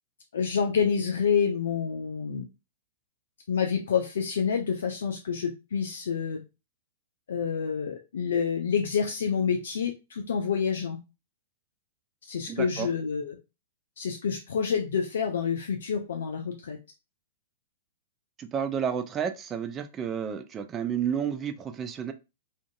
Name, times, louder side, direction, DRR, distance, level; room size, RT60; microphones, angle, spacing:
voice 1, 0.3-2.4 3.5-6.4 7.3-11.0 12.2-13.4 14.0-16.8, left 6 dB, 70° left, 0.4 m, -28 dB
voice 2, 12.5-12.9 18.4-22.1, right 8 dB, 25° right, 0.4 m, -31 dB
2.5 x 2.5 x 2.4 m
hypercardioid pair, 110°, 0 cm